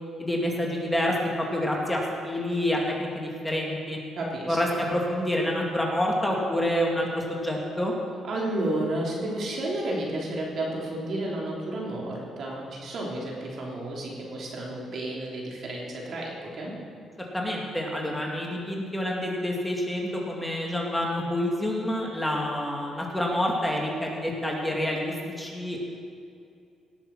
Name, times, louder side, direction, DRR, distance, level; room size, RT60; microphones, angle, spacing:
voice 1, 0.2-4.0 4.5-7.9 17.2-25.8, left 1 dB, 5° left, -2 dB, 2.3 m, -28 dB
voice 2, 4.2-4.8 8.2-16.7, right 1 dB, 60° right, -3 dB, 3.3 m, -32 dB
18.0 x 7.3 x 6.0 m, 2.4 s
cardioid pair, 90°, 0 cm